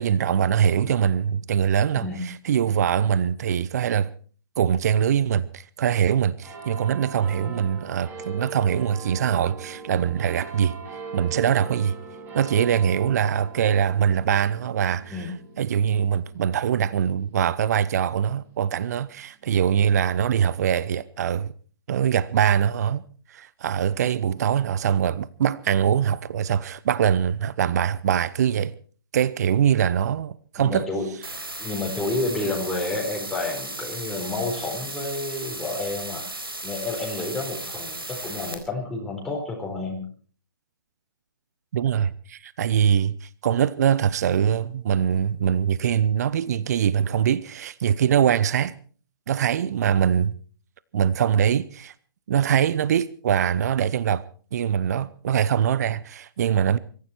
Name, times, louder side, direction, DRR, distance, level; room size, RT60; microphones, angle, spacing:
voice 1, 0.0-4.1 4.6-10.8 11.1-12.0 12.3-15.3 15.6-21.5 21.9-23.0 23.3-28.7 29.1-30.9 41.7-48.8 49.3-50.3 50.9-51.9 52.3-54.2 54.5-56.8, right 8 dB, 45° right, 0.7 m, -23 dB
sound 1, 6.4-19.3 20.0-20.1, right 4 dB, 15° right, 6.1 m, -41 dB
voice 2, 30.6-31.1 31.6-36.3 36.6-40.0, left 2 dB, 5° left, 4.1 m, -30 dB
sound 2, 31.2-38.5, right 2 dB, 90° right, 4.2 m, -35 dB
23.0 x 14.5 x 4.4 m
figure-of-eight pair, 135°, 12 cm